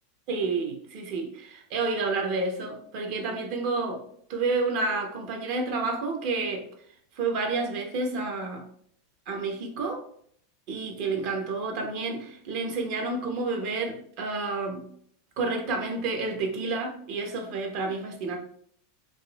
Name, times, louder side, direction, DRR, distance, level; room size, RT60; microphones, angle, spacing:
voice 1, 0.3-4.0 4.3-6.7 7.2-8.6 9.3-10.0 10.7-14.8 15.4-18.4, right 3 dB, 55° right, 3 dB, 0.9 m, -30 dB
3.9 x 2.6 x 2.3 m, 0.62 s
supercardioid pair, 135°, 0 cm